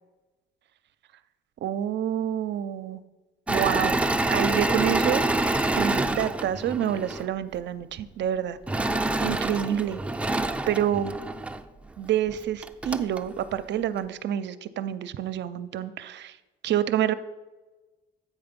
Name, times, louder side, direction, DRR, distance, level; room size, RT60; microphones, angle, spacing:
voice 1, 1.6-3.0 3.5-5.3 5.7-8.6 9.2-11.1 12.0-16.4 16.6-17.1, right 10 dB, 65° right, 13 dB, 0.5 m, -28 dB
Engine / Mechanisms, 3.5-7.3 8.7-11.6 12.3-12.4 12.6-13.2, right 2 dB, 5° right, 0.5 m, -26 dB
8.3 x 4.8 x 5.2 m, 1.2 s
cardioid pair, 90°, 20 cm